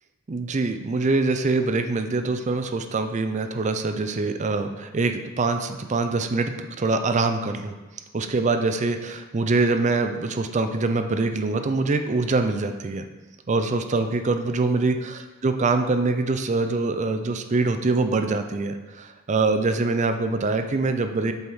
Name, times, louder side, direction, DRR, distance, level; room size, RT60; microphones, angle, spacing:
voice 1, 0.3-7.8 8.1-13.1 13.5-21.3, right 3 dB, 35° right, 8 dB, 0.4 m, -24 dB
7.7 x 4.2 x 3.6 m, 1.2 s
head